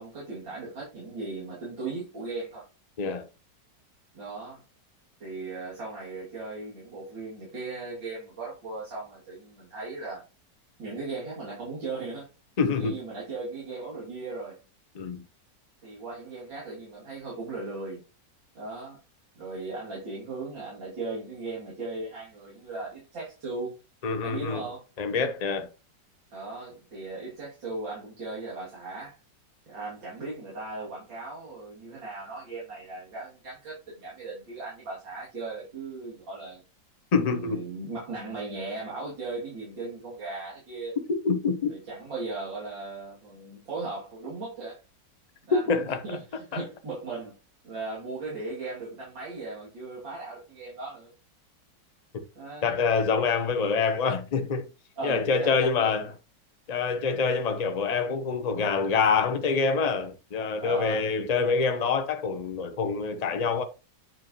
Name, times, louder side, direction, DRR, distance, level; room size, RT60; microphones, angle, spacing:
voice 1, 0.0-2.6 4.1-4.6 5.2-10.2 10.8-12.3 12.8-14.6 15.8-18.0 18.6-19.0 19.4-23.7 24.2-24.9 26.3-29.2 29.7-36.6 37.2-41.0 41.7-44.8 45.5-47.4 47.6-51.1 52.4-52.7 55.0-55.9 60.6-61.0, right 3 dB, 85° right, 3.4 m, -37 dB
voice 2, 12.6-12.9 14.9-15.2 24.0-24.6 25.0-25.7 37.1-37.6 41.1-41.7 45.7-46.0 46.5-46.6 52.6-54.6 55.0-56.1 56.7-63.6, left 5 dB, 85° left, 0.3 m, -26 dB
9.2 x 5.0 x 3.0 m
omnidirectional pair, 2.0 m